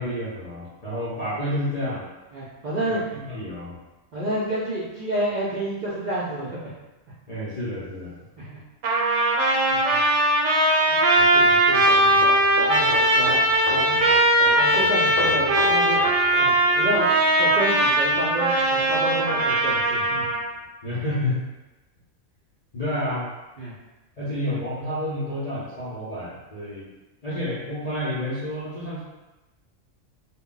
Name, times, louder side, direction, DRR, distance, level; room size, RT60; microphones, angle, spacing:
voice 1, 0.0-2.1 2.9-3.8 7.3-8.1 20.8-21.4 22.7-23.3 24.2-26.9 27.2-29.0, left 1 dB, 45° left, -8 dB, 0.5 m, -29 dB
voice 2, 2.3-3.0 4.1-6.7 8.4-8.6 9.7-10.0 10.9-12.2 12.7-13.4 13.7-14.0 14.6-16.0 16.4-17.1 17.3-20.3 23.6-23.8, right 1 dB, 60° right, -9 dB, 0.5 m, -30 dB
Trumpet, 8.8-20.5, right 1 dB, 85° right, 1.0 m, -20 dB
sound 1, 11.8-19.3 19.6-19.8, left 3 dB, 75° left, 0.9 m, -36 dB
2.1 x 2.1 x 3.7 m, 1.1 s
omnidirectional pair, 1.3 m